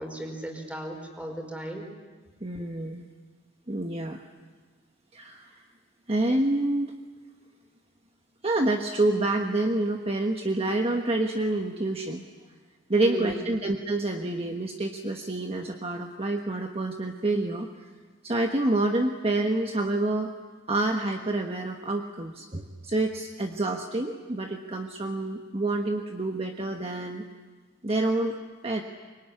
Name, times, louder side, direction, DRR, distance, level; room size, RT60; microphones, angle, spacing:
voice 1, 0.0-1.9 13.0-13.4, equal, 5° right, 3 dB, 4.8 m, -35 dB
voice 2, 2.4-3.1 3.7-4.2 5.1-5.6 6.1-7.0 8.4-12.2 12.9-17.7 18.2-20.3 20.7-27.2 27.8-28.3 28.6-28.8, right 2 dB, 30° right, 3 dB, 1.4 m, -27 dB
25.0 x 23.0 x 9.9 m, 1.4 s
head